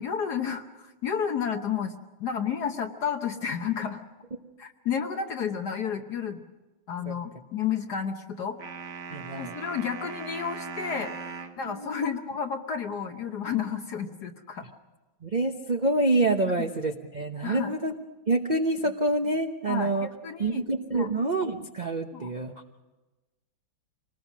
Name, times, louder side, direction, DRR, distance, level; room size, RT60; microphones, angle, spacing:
voice 1, 0.0-1.9 2.2-4.0 4.6-6.4 6.9-8.6 9.4-11.1 11.6-14.6 16.6-16.7 17.4-17.7 19.7-20.6 20.9-21.1 22.1-22.3, left 7 dB, 55° left, 4 dB, 1.4 m, -31 dB
sound 1, 8.6-11.6, right 5 dB, 60° right, 1.9 m, -39 dB
voice 2, 9.1-9.6 11.8-12.1 15.2-17.9 18.3-20.1 20.4-22.5, right 2 dB, 40° right, 5 dB, 0.6 m, -27 dB
25.5 x 19.5 x 6.2 m, 1.1 s
omnidirectional pair, 2.2 m